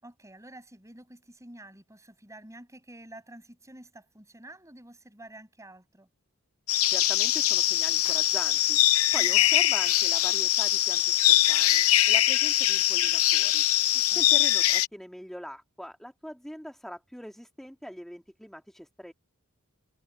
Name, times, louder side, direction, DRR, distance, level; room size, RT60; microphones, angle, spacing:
voice 1, 0.0-6.1 9.1-9.5 13.9-14.4, right 1 dB, 15° right, 7.2 m, -49 dB
sound 1, 6.7-14.9, left 14 dB, 80° left, 0.7 m, -22 dB
voice 2, 6.9-8.8 9.1-13.6 14.1-19.1, equal, ahead, 2.1 m, -42 dB
head